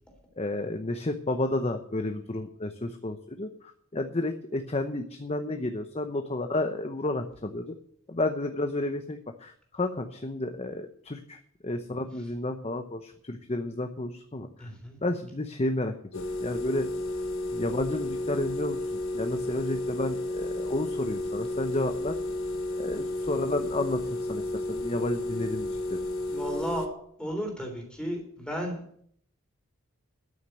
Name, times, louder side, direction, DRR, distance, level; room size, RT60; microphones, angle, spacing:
voice 1, 0.4-7.7 8.1-14.7 15.0-16.9 17.5-18.8 19.1-22.2 22.8-26.0, left 2 dB, 30° left, 6 dB, 0.8 m, -31 dB
voice 2, 14.6-15.0 26.3-26.9 27.2-28.8, equal, 5° left, 2 dB, 3.3 m, -34 dB
sound 1, 16.1-26.9, left 1 dB, 70° left, 1.4 m, -32 dB
13.0 x 6.6 x 9.1 m, 0.63 s
head